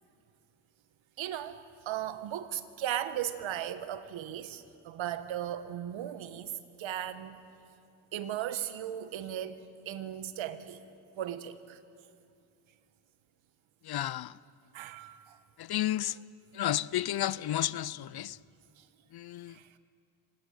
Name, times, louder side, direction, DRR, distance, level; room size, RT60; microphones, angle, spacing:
voice 1, 1.2-6.5 6.8-7.4 8.1-10.8 11.1-11.8 14.7-15.4 18.8-18.9 19.5-19.7, right 11 dB, 70° right, 1.5 m, -37 dB
voice 2, 13.8-14.4 15.6-16.2 16.5-18.4 19.1-19.6, left 13 dB, 50° left, 0.7 m, -32 dB
25.5 x 18.0 x 9.0 m
supercardioid pair, 70°, 47 cm